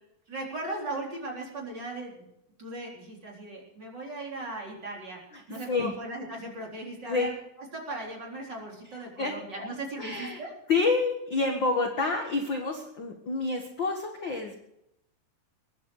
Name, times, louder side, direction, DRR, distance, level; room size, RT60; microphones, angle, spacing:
voice 1, 0.3-2.2 2.6-5.2 5.5-7.3 7.7-10.5, right 2 dB, 30° right, -2 dB, 4.3 m, -37 dB
voice 2, 5.3-5.9 7.0-7.3 8.9-9.7 10.0-10.4 10.7-14.6, left 3 dB, 45° left, 3 dB, 1.6 m, -29 dB
21.5 x 11.5 x 4.8 m, 0.79 s
omnidirectional pair, 4.3 m